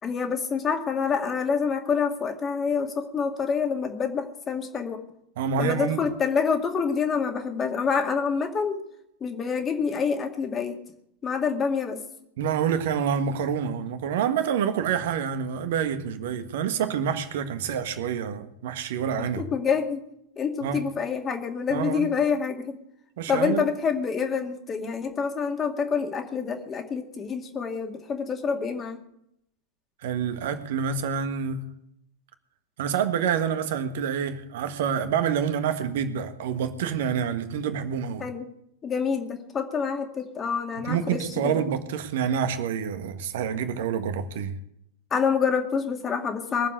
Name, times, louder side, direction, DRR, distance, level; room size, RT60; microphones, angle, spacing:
voice 1, 0.0-5.0 5.6-8.8 9.2-10.8 11.2-12.0 19.4-20.1 20.4-22.8 23.3-29.0 38.2-38.5 38.8-41.6 45.1-46.7, left 6 dB, 20° left, 2.2 m, -27 dB
voice 2, 5.4-6.0 12.4-19.5 20.6-20.8 21.7-22.1 23.2-23.7 30.0-31.7 32.8-38.2 40.8-44.6, right 7 dB, 55° right, 1.5 m, -27 dB
21.5 x 7.5 x 8.2 m
figure-of-eight pair, 90°, 0 cm